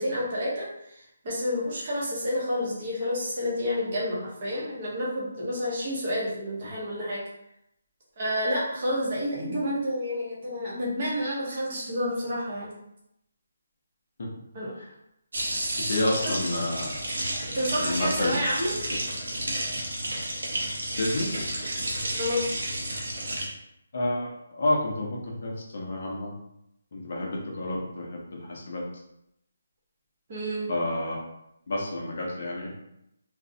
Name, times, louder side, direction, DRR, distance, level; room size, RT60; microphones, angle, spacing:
voice 1, 0.0-7.2 8.2-12.7 14.5-14.7 17.5-18.7 22.1-22.5 30.3-30.7, equal, 30° right, -6 dB, 0.6 m, -29 dB
sound 1, 15.3-23.5, right 1 dB, 80° right, 0.7 m, -31 dB
voice 2, 15.9-17.0 17.8-18.3 21.0-21.4 23.9-26.3 26.9-28.8 30.7-31.2 31.7-32.7, left 1 dB, 45° left, -2 dB, 0.5 m, -29 dB
2.4 x 2.0 x 2.5 m, 0.81 s
hypercardioid pair, 175°, 0 cm